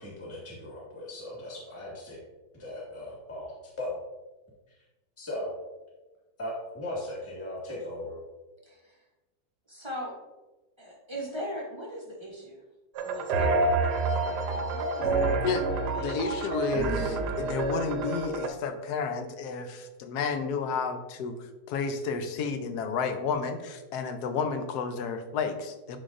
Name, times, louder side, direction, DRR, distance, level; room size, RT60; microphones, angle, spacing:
voice 1, 0.0-2.2 2.6-3.9 5.2-5.5 6.4-8.2, left 1 dB, 10° left, -5 dB, 1.5 m, -38 dB
voice 2, 8.7-9.0 9.7-10.2 10.8-12.6 13.0-13.9 14.2-16.6, equal, 25° right, -2 dB, 0.6 m, -40 dB
sound 1, 13.0-18.5, right 3 dB, 70° right, 1.2 m, -28 dB
voice 3, 16.0-21.3 21.7-26.0, left 5 dB, 70° left, 8 dB, 1.1 m, -31 dB
11.0 x 4.0 x 2.5 m, 1.1 s
omnidirectional pair, 1.9 m